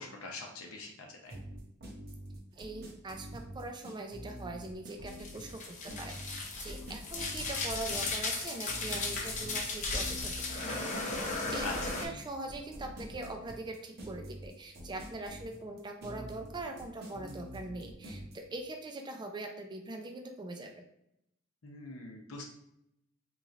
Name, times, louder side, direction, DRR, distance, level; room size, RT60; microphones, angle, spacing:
voice 1, 0.0-1.4 11.6-11.7 21.6-22.5, left 3 dB, 70° left, 1 dB, 0.7 m, -43 dB
sound 1, 1.3-18.3, equal, 50° right, 0.8 m, -46 dB
voice 2, 2.5-20.8, right 2 dB, 20° right, 4 dB, 0.4 m, -42 dB
sound 2, 5.1-12.0, left 3 dB, 35° left, 0.6 m, -36 dB
3.9 x 3.0 x 2.4 m, 0.81 s
head